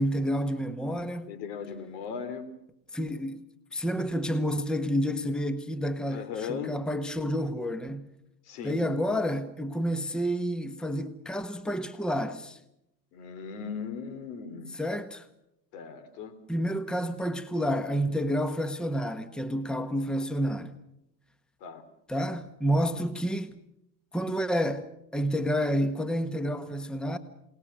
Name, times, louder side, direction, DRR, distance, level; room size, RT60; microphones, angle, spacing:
voice 1, 0.0-1.3 2.9-8.1 8.6-12.6 14.7-15.2 16.5-20.8 22.1-23.6 24.1-27.2, equal, ahead, 1.3 m, -29 dB
voice 2, 1.3-2.5 6.1-6.8 8.5-8.8 13.1-14.8 15.7-16.4 21.6-21.8, left 6 dB, 70° left, 3.9 m, -38 dB
27.5 x 19.5 x 6.3 m
hypercardioid pair, 100°, 50 cm